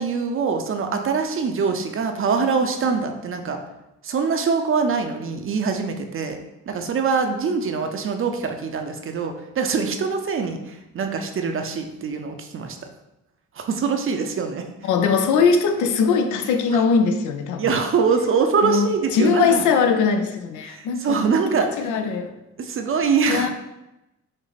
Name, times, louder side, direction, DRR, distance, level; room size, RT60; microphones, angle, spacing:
voice 1, 0.0-3.6 4.0-6.4 6.7-12.8 13.6-14.7 16.7-16.8 17.6-19.6 20.6-21.9 22.6-23.5, right 5 dB, 45° right, 0.6 m, -23 dB
voice 2, 14.8-17.6 18.6-22.4 23.3-23.5, left 5 dB, 80° left, 0.6 m, -21 dB
5.2 x 2.0 x 4.0 m
cardioid pair, 90°, 30 cm